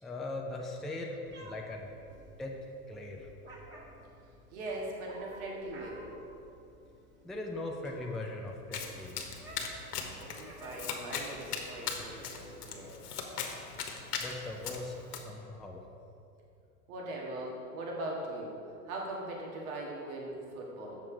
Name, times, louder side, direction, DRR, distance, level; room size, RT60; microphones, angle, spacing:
voice 1, 0.0-1.9 2.4-2.6 2.9-3.3 7.2-9.3 14.2-15.8, left 2 dB, ahead, 0 dB, 0.4 m, -40 dB
Meow, 1.3-12.9, right 1 dB, 25° right, 1.7 m, -54 dB
voice 2, 4.5-6.0 10.2-13.0 16.9-18.6 18.9-21.0, right 1 dB, 65° right, -2 dB, 1.9 m, -40 dB
Domestic sounds home sounds, 8.7-15.2, left 6 dB, 80° left, 1.1 m, -39 dB
7.0 x 6.4 x 4.5 m, 2.7 s
hypercardioid pair, 100°, 46 cm